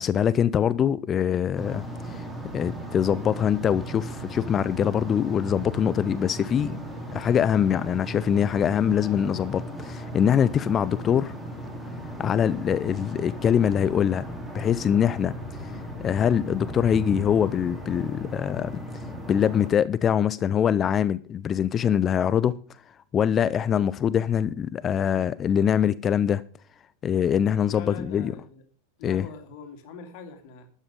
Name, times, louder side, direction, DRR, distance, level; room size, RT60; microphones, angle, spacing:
voice 1, 0.0-2.3 2.5-6.8 7.1-11.3 12.2-14.2 14.5-15.3 15.6-18.8 19.3-22.6 23.1-26.4 27.0-28.3 29.0-29.3, left 8 dB, 25° left, 0.5 m, -23 dB
sound 1, 1.5-19.7, equal, 5° right, 3.7 m, -37 dB
voice 2, 27.7-28.6 29.0-30.7, left 4 dB, 45° left, 2.6 m, -42 dB
12.5 x 9.0 x 5.2 m
figure-of-eight pair, 90°, 0 cm